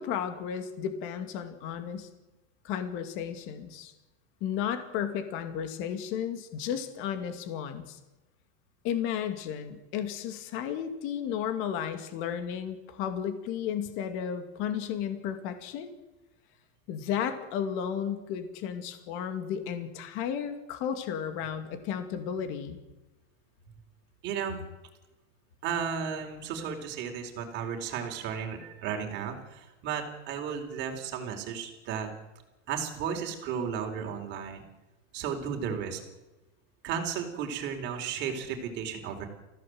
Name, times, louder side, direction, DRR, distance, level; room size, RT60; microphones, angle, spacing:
voice 1, 0.0-2.1 2.6-3.9 4.4-8.0 8.8-15.9 16.9-22.8, left 8 dB, 30° left, 8 dB, 2.4 m, -33 dB
voice 2, 24.2-24.6 25.6-32.1 32.7-34.6 35.1-36.0 36.8-39.3, right 7 dB, 30° right, 3 dB, 4.1 m, -34 dB
29.0 x 16.0 x 7.8 m, 1.0 s
supercardioid pair, 175°, 38 cm